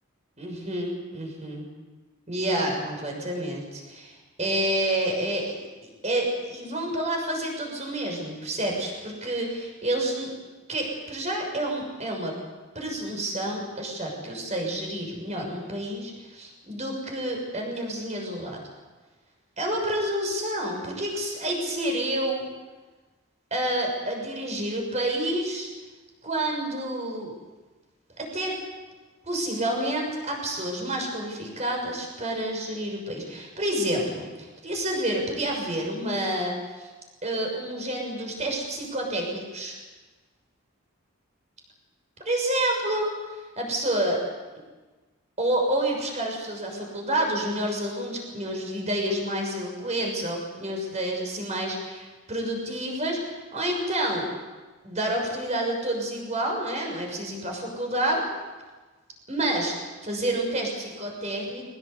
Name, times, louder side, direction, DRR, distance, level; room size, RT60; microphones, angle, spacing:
voice 1, 0.4-1.7 2.3-5.6 6.0-10.3 10.7-12.3 12.7-18.6 19.6-22.5 23.5-25.7 26.2-27.3 28.2-28.6 29.3-36.9 37.2-39.7 42.2-43.1 43.6-44.2 45.4-54.3 54.8-58.2 59.3-61.6, right 1 dB, 35° right, 1 dB, 6.6 m, -29 dB
22.5 x 20.0 x 8.3 m, 1.3 s
head